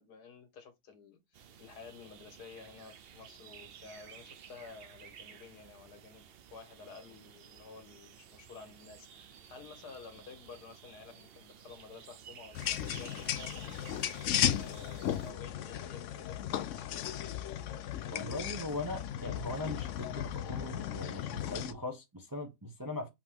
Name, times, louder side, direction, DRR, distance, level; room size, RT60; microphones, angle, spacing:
voice 1, 0.0-14.0 14.5-17.4, left 5 dB, 85° left, 1.7 m, -52 dB
sound 1, 1.3-15.3, right 8 dB, 85° right, 0.5 m, -54 dB
sound 2, 12.5-21.7, left 11 dB, 70° left, 0.7 m, -35 dB
voice 2, 18.1-23.1, left 2 dB, 20° right, 0.6 m, -40 dB
5.0 x 2.9 x 3.6 m
omnidirectional pair, 1.7 m